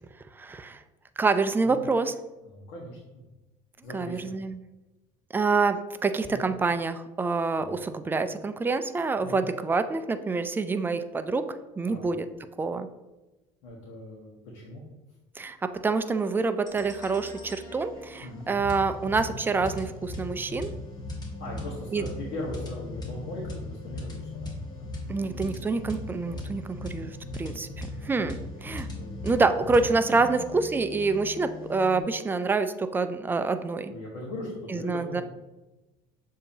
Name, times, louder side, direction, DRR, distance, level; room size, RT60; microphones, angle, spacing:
voice 1, 0.4-0.8 1.2-2.1 3.9-4.6 5.3-11.5 11.8-12.3 12.6-12.9 15.4-20.7 21.9-22.0 25.1-28.9 29.2-33.9 34.7-35.2, right 4 dB, 15° right, 10 dB, 0.3 m, -27 dB
voice 2, 2.4-3.2 3.8-4.2 6.2-6.5 7.6-7.8 9.2-9.5 11.8-12.1 13.6-14.8 18.2-18.5 21.4-24.7 28.8-29.4 30.1-30.3 33.9-35.2, left 1 dB, 75° left, -3 dB, 1.1 m, -39 dB
sound 1, 16.7-32.0, left 2 dB, 25° left, 1.3 m, -39 dB
6.8 x 2.7 x 2.8 m, 1.1 s
supercardioid pair, 95°, 16 cm